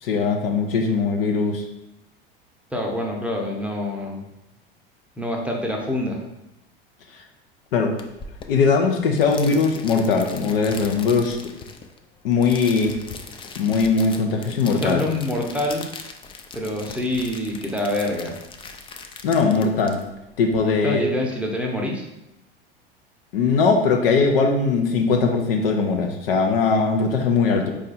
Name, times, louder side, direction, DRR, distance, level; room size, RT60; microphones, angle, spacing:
voice 1, 0.0-1.6 7.7-8.0 8.5-11.4 12.2-13.0 13.6-15.0 19.2-20.0 20.4-21.1 23.3-27.7, left 4 dB, 70° left, 3 dB, 0.7 m, -20 dB
voice 2, 2.7-4.2 5.2-6.2 14.6-15.9 16.5-18.4 20.6-22.1, left 1 dB, 5° right, -1 dB, 0.8 m, -26 dB
sound 1, 8.0-20.6, left 4 dB, 20° left, 0.4 m, -40 dB
4.4 x 2.5 x 4.0 m, 0.90 s
hypercardioid pair, 85°, 30 cm